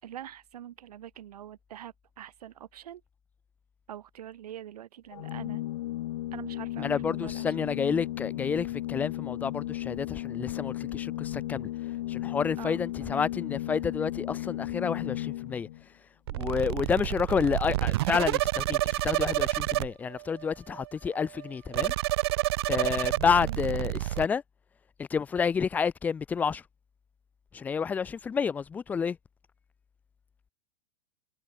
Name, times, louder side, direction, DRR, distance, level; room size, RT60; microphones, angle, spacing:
voice 1, 0.0-3.0 3.9-5.6 6.3-7.7 12.6-13.3 23.4-23.6, right 11 dB, 85° right, 5.5 m, -44 dB
Organ, 5.1-15.8, left 15 dB, 55° left, 1.3 m, -35 dB
voice 2, 6.8-11.7 12.1-15.7 16.3-21.9 22.7-24.4 25.0-26.6 27.5-29.2, left 6 dB, 10° left, 0.9 m, -29 dB
sound 1, 16.3-19.9 20.1-20.5 20.8-20.9 21.1-21.5 21.7-24.2, right 17 dB, 45° right, 0.5 m, -29 dB
supercardioid pair, 180°, 19 cm